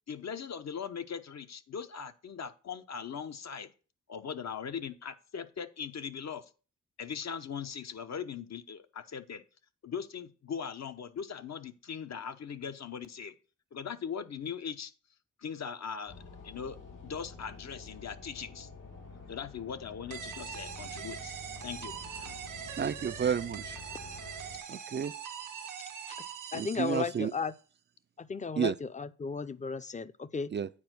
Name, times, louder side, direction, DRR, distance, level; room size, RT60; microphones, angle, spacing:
voice 1, 0.1-3.7 4.1-6.5 7.0-9.4 9.8-13.3 13.7-14.9 15.4-16.2 16.4-16.8 17.0-18.7 19.3-21.4 21.6-21.9 22.2-22.3, left 7 dB, 55° left, 0.9 m, -40 dB
sound 1, 16.1-24.6, left 4 dB, 80° left, 2.9 m, -49 dB
sound 2, 20.1-27.5, right 8 dB, 85° right, 1.6 m, -43 dB
voice 2, 22.8-23.8 24.7-25.1 26.5-27.3 28.6-28.7 30.5-30.7, right 7 dB, 35° right, 0.4 m, -31 dB
voice 3, 26.5-27.5 28.2-30.5, left 5 dB, 25° left, 0.6 m, -35 dB
8.7 x 4.6 x 6.0 m
cardioid pair, 60°, 31 cm